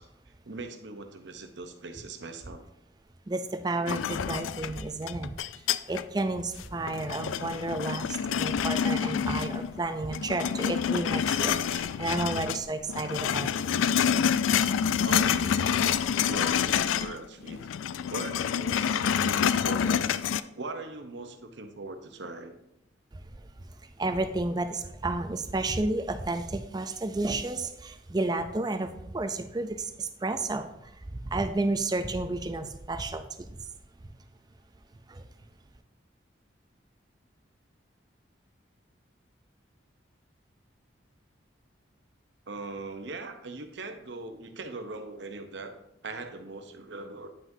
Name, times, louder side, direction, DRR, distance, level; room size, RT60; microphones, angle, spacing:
voice 1, 0.4-2.6 15.0-15.9 16.2-17.7 18.1-20.0 20.5-22.6 42.5-45.7 46.0-47.3, right 3 dB, 65° right, 6 dB, 0.8 m, -40 dB
voice 2, 3.3-5.4 5.9-13.5 13.8-14.0 23.1-23.2 24.0-33.5 35.1-35.2, right 2 dB, 20° right, 8 dB, 0.4 m, -31 dB
sound 1, 3.9-6.2 6.6-9.8 10.1-12.6 12.9-17.2 17.4-20.4, left 8 dB, 85° left, 0.3 m, -27 dB
sound 2, 5.9-17.1, equal, 35° right, 1.1 m, -56 dB
9.1 x 5.9 x 2.7 m, 0.82 s
head